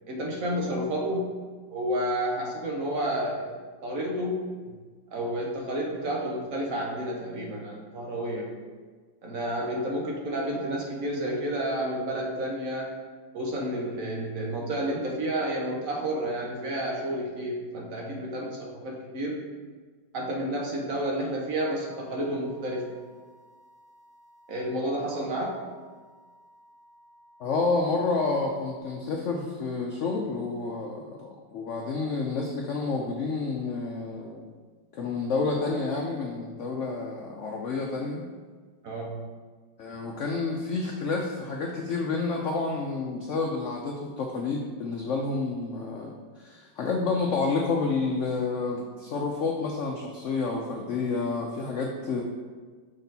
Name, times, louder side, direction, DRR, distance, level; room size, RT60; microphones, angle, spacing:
voice 1, 0.1-1.3 1.7-4.4 5.1-8.5 9.2-12.9 13.3-19.4 20.1-22.9 24.5-25.6 38.8-39.2, right 1 dB, 55° right, -1 dB, 1.2 m, -30 dB
sound 1, 21.6-28.8, equal, 75° right, 2.7 m, -57 dB
voice 2, 27.4-34.4 34.9-38.2 39.8-52.2, left 3 dB, 80° left, 1 dB, 0.6 m, -29 dB
6.2 x 4.2 x 4.0 m, 1.5 s
omnidirectional pair, 2.0 m